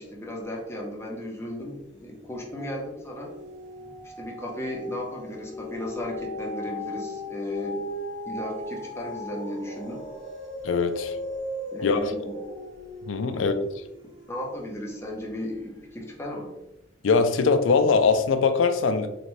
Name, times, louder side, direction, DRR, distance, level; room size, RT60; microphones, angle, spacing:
voice 1, 0.0-3.3 4.0-7.8 8.3-10.0 11.7-12.4 13.3-13.5 14.3-16.5, left 1 dB, 15° left, -2 dB, 0.8 m, -35 dB
sound 1, 1.9-2.4 2.8-15.3 15.8-15.9, left 1 dB, 75° right, 1.5 m, -37 dB
voice 2, 10.6-11.2 11.8-12.1 13.1-13.5 17.0-19.1, left 4 dB, 75° left, 9 dB, 0.4 m, -22 dB
3.9 x 3.4 x 3.1 m, 0.91 s
head